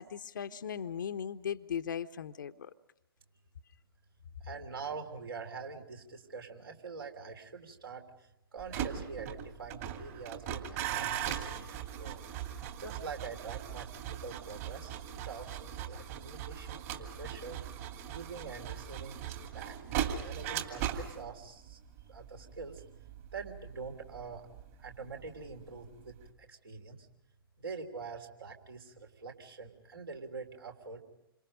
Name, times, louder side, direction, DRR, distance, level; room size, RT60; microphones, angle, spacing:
voice 1, 0.0-2.7, left 8 dB, 55° left, 10 dB, 1.0 m, -38 dB
voice 2, 4.4-12.2 12.8-15.0 15.2-17.6 18.1-21.8 22.1-22.8 23.3-24.5 24.8-27.1 27.6-31.0, right 4 dB, 65° right, 3 dB, 3.4 m, -45 dB
sound 1, 8.6-25.6 25.8-26.3, right 10 dB, 35° right, 2.5 m, -39 dB
28.0 x 26.0 x 5.2 m, 0.84 s
figure-of-eight pair, 120°, 13 cm